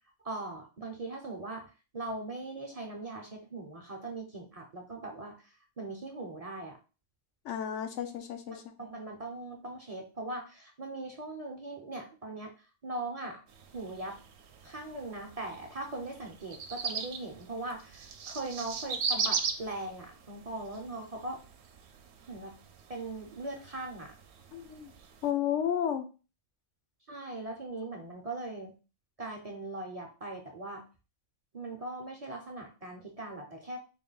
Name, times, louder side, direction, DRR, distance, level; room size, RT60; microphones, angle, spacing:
voice 1, 0.2-1.6 1.9-5.3 5.8-6.8 8.5-12.5 12.8-13.4 13.7-14.2 14.6-21.4 22.3-22.5 22.9-24.1 27.1-28.7 29.2-30.8 31.5-33.8, right 2 dB, 40° right, 1 dB, 0.6 m, -40 dB
voice 2, 7.4-9.0 24.5-24.9 25.2-26.1, left 9 dB, 85° left, 7 dB, 0.9 m, -33 dB
sound 1, 13.5-25.3, right 5 dB, 70° right, 0.8 m, -39 dB
3.9 x 2.2 x 3.8 m, 0.33 s
omnidirectional pair, 1.2 m